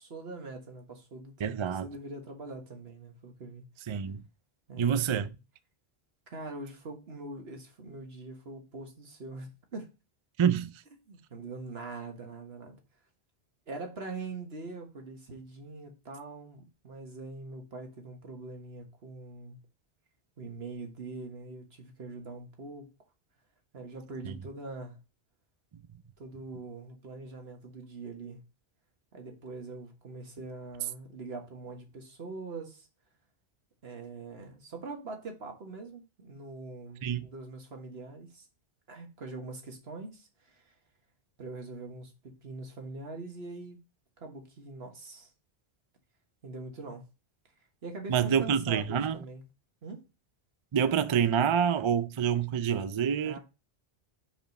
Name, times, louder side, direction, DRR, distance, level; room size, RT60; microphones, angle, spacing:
voice 1, 0.0-3.6 4.7-5.1 6.3-9.9 11.1-12.8 13.7-19.6 20.4-22.9 23.7-25.0 26.2-28.4 29.1-32.9 33.8-38.5 38.9-40.7 41.4-43.8 44.2-45.3 46.4-47.1 47.8-49.4 49.8-50.1 53.2-53.4, right 3 dB, 70° right, 1.7 m, -43 dB
voice 2, 1.4-1.9 3.9-4.2 4.8-5.3 10.4-10.8 24.2-24.3 37.0-37.3 48.1-49.2 50.7-53.4, right 8 dB, 50° right, 0.3 m, -27 dB
5.1 x 5.0 x 5.2 m
omnidirectional pair, 1.1 m